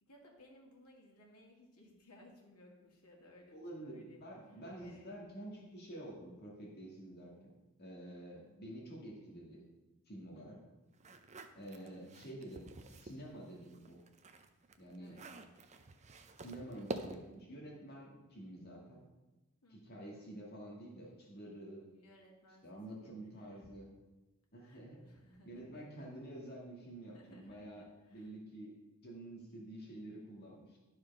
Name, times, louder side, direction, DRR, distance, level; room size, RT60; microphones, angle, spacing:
voice 1, 0.0-5.1 8.1-8.3 10.3-10.7 11.7-12.0 15.0-15.3 19.6-20.0 21.9-23.7 24.6-25.8 27.1-28.3, left 1 dB, 90° left, -1 dB, 2.2 m, -62 dB
voice 2, 3.5-9.7 10.1-10.6 11.6-14.0 14.8-15.2 16.4-19.0 19.7-21.9 22.6-23.9 24.5-25.0 25.5-27.8 28.1-28.7 29.0-30.8, right 1 dB, 45° left, -3 dB, 1.9 m, -49 dB
sound 1, 11.0-13.2 13.6-17.4, right 3 dB, 30° right, 0.6 m, -48 dB
12.0 x 4.8 x 5.3 m, 1.1 s
head